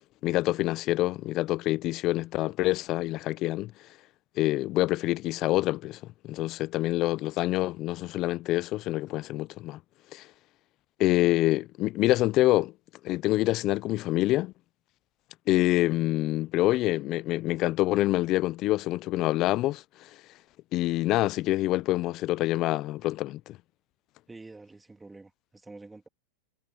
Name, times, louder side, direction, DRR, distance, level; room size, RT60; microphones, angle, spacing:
voice 1, 0.2-3.7 4.4-9.8 10.1-10.3 11.0-12.7 13.0-14.5 15.5-20.1 20.7-23.6, left 17 dB, 40° left, 0.4 m, -26 dB
voice 2, 24.3-26.1, right 3 dB, 10° right, 2.9 m, -48 dB
hypercardioid pair, 125°, 0 cm